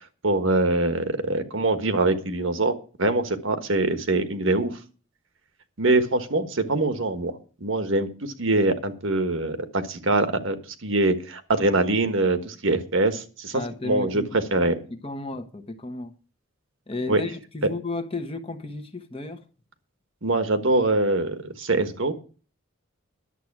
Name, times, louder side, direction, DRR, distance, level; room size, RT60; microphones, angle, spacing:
voice 1, 0.2-2.7 3.0-4.7 5.8-7.3 7.6-10.6 10.8-14.8 17.1-17.2 20.2-22.1, right 2 dB, 60° right, 1.4 m, -23 dB
voice 2, 13.5-14.3 15.0-16.1 16.9-19.4, left 2 dB, 25° left, 1.2 m, -33 dB
11.5 x 7.7 x 6.0 m
head